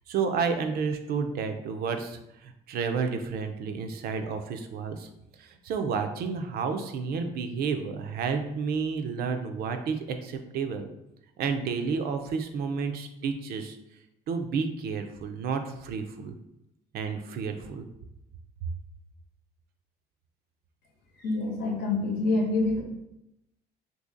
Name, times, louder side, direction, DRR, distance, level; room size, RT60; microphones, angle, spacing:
voice 1, 0.1-5.1 5.4-10.9 11.4-13.8 14.3-16.4 16.9-17.9 18.6-18.7, right 5 dB, 65° right, 6 dB, 0.5 m, -31 dB
voice 2, 21.2-22.8, left 2 dB, 80° left, 0 dB, 0.9 m, -26 dB
2.8 x 2.7 x 3.7 m, 0.86 s
cardioid pair, 110°, 17 cm